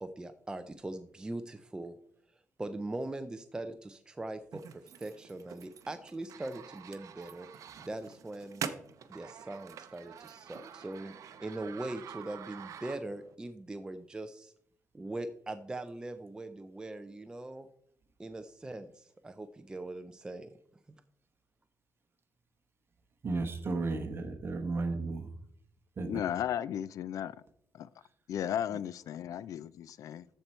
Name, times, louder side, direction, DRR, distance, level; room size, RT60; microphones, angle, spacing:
voice 1, 0.0-1.9 2.6-7.5 7.8-8.6 9.1-11.1 11.4-14.5 14.9-17.7 18.2-20.5, right 2 dB, 15° right, 0.5 m, -41 dB
sound 1, 4.5-13.4, right 7 dB, 70° right, 0.7 m, -46 dB
voice 2, 23.2-25.3 26.0-26.2, right 3 dB, 40° right, 1.2 m, -34 dB
voice 3, 26.1-27.4 27.7-27.9 28.3-30.3, left 10 dB, 80° left, 0.4 m, -35 dB
13.5 x 4.5 x 4.3 m
cardioid pair, 130°, 6 cm